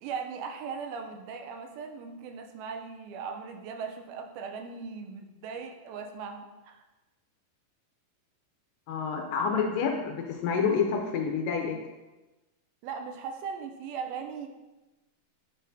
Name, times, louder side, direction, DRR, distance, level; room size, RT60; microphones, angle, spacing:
voice 1, 0.0-6.8 12.8-14.5, right 6 dB, 85° right, 5 dB, 2.4 m, -38 dB
voice 2, 8.9-11.8, left 6 dB, 80° left, 2 dB, 2.1 m, -28 dB
10.0 x 4.1 x 2.6 m, 1.1 s
omnidirectional pair, 4.2 m